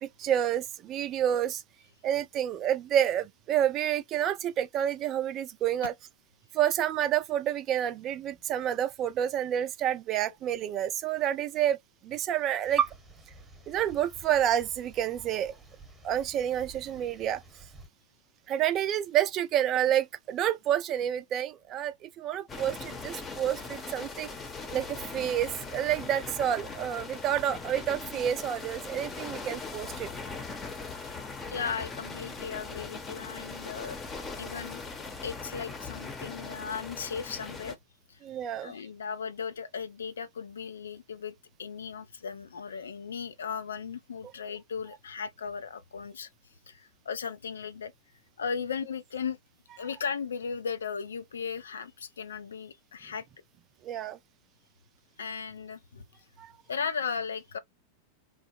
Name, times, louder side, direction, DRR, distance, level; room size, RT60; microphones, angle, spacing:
voice 1, 0.0-1.6 2.0-5.9 6.5-11.8 12.0-12.8 13.7-15.5 16.0-17.4 18.5-24.3 24.7-30.1 38.2-38.7 53.8-54.2 56.4-56.5, right 10 dB, 35° right, 0.4 m, -29 dB
sound 1, 12.6-17.9, right 8 dB, 10° right, 1.1 m, -38 dB
sound 2, 22.5-37.7, left 4 dB, 20° left, 0.8 m, -40 dB
voice 2, 31.5-34.0 34.4-34.8 35.2-37.8 38.1-38.2 38.6-46.3 46.7-47.9 48.4-49.4 49.8-53.3 55.2-56.0 56.7-57.6, left 6 dB, 70° left, 0.5 m, -36 dB
3.2 x 2.1 x 3.0 m
figure-of-eight pair, 90°, 0 cm